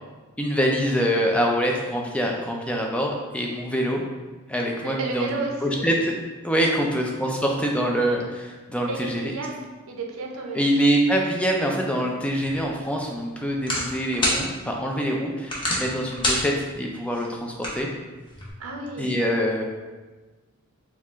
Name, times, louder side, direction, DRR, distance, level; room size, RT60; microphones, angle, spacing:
voice 1, 0.4-4.0 4.5-5.9 6.4-9.3 10.5-17.9 19.0-19.6, equal, 5° left, 0 dB, 0.4 m, -25 dB
voice 2, 4.8-5.8 6.6-6.7 8.9-10.7 18.6-19.2, right 3 dB, 65° right, 1 dB, 0.6 m, -32 dB
sound 1, 12.4-18.5, left 1 dB, 20° left, 0.8 m, -31 dB
4.6 x 2.4 x 3.5 m, 1.3 s
head